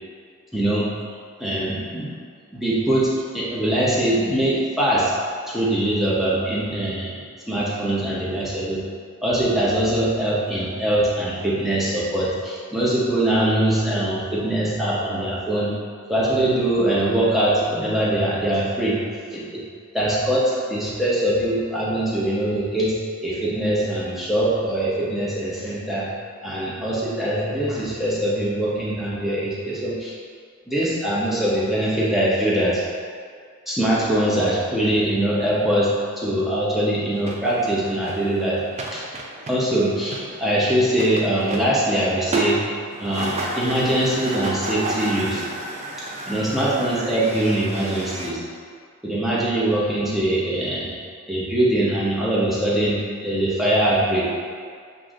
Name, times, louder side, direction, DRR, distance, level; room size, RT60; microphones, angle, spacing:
voice 1, 0.5-0.9 1.4-2.1 2.5-5.1 5.5-7.1 7.5-8.8 9.2-15.8 16.1-19.0 19.3-19.6 19.9-26.1 26.4-30.1 30.7-32.8 33.7-38.6 38.9-39.0 39.5-42.6 43.0-45.4 46.0-48.4 49.0-50.9 51.3-54.3, right 1 dB, ahead, -8 dB, 0.7 m, -22 dB
sound 1, 37.2-48.3, right 2 dB, 30° right, 0.3 m, -32 dB
7.4 x 2.6 x 2.4 m, 2.1 s
head